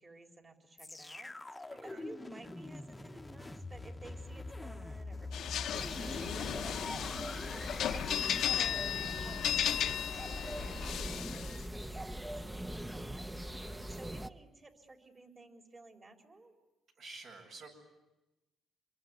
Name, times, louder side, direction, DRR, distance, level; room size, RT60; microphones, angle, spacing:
voice 1, 0.0-11.0 11.3-16.5, right 3 dB, 30° right, 4 dB, 4.0 m, -55 dB
sound 1, 0.8-10.8 11.4-11.5, left 2 dB, 15° left, 1.0 m, -46 dB
voice 2, 1.7-2.1 7.8-8.0 13.2-13.9 17.0-17.7, right 3 dB, 65° right, 3 dB, 7.8 m, -52 dB
sound 2, 5.3-11.6, left 10 dB, 75° left, 0.9 m, -35 dB
sound 3, 5.7-14.3, right 1 dB, 10° right, 0.9 m, -42 dB
27.0 x 22.5 x 9.6 m, 1.0 s
cardioid pair, 90°, 0 cm